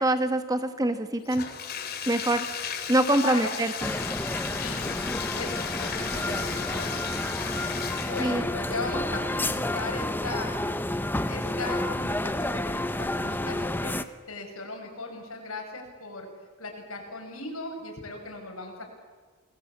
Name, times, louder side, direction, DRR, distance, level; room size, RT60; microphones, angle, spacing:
voice 1, 0.0-1.5 2.1-2.5 2.9-3.9 8.2-8.4, right 1 dB, 15° right, 9 dB, 1.4 m, -24 dB
Bathtub (filling or washing), 1.3-8.5, left 7 dB, 45° left, 2.9 m, -35 dB
voice 2, 3.2-3.5 4.5-4.9 5.3-7.0 8.1-10.5 11.3-14.0 14.3-16.3 16.6-18.9, left 2 dB, 80° left, 2 dB, 7.7 m, -37 dB
sound 1, 3.8-14.0, left 1 dB, 10° left, 0.9 m, -30 dB
28.5 x 20.5 x 8.7 m, 1.4 s
head